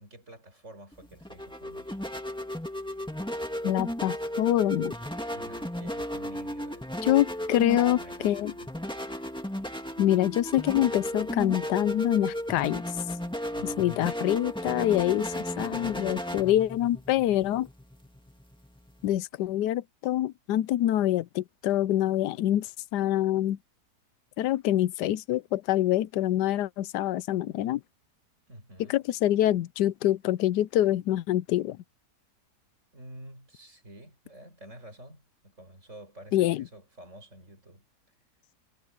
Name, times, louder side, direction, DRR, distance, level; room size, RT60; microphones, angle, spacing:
voice 1, 0.0-2.0 5.3-6.9 7.7-8.7 13.5-14.2 28.5-29.0 32.9-37.8, right 1 dB, 45° right, 7.3 m, -49 dB
sound 1, 0.9-19.2, equal, 5° left, 1.9 m, -35 dB
voice 2, 3.6-4.9 7.0-8.5 10.0-12.8 13.8-17.7 19.0-23.6 24.4-27.8 28.9-31.8 36.3-36.6, left 13 dB, 90° left, 1.2 m, -25 dB
omnidirectional pair, 1.7 m